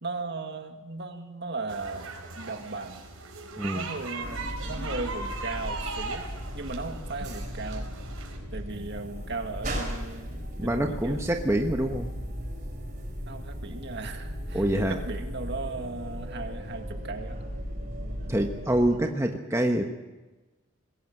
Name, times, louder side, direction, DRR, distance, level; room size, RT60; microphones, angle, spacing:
voice 1, 0.0-2.1 2.4-3.0 3.7-6.3 6.5-7.9 8.5-11.2 13.3-17.4, right 3 dB, 50° right, 5 dB, 2.1 m, -37 dB
sound 1, 1.7-8.4, right 3 dB, 85° right, 4.6 m, -39 dB
voice 2, 3.6-3.9 10.6-12.1 14.5-15.0 18.3-19.9, right 1 dB, 15° right, 3 dB, 1.1 m, -26 dB
sound 2, 4.2-19.0, equal, 35° right, 5.2 m, -36 dB
20.5 x 17.0 x 7.8 m, 1.1 s
head